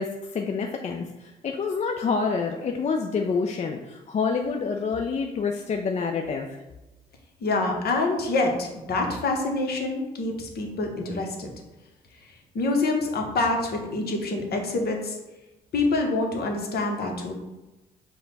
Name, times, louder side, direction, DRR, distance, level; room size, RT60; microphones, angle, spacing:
voice 1, 0.0-6.5, left 5 dB, 35° left, 3 dB, 0.4 m, -27 dB
voice 2, 7.4-11.5 12.5-15.2 15.7-17.3, left 2 dB, 55° left, 2 dB, 1.0 m, -26 dB
4.9 x 2.2 x 4.0 m, 1.1 s
hypercardioid pair, 55°, 19 cm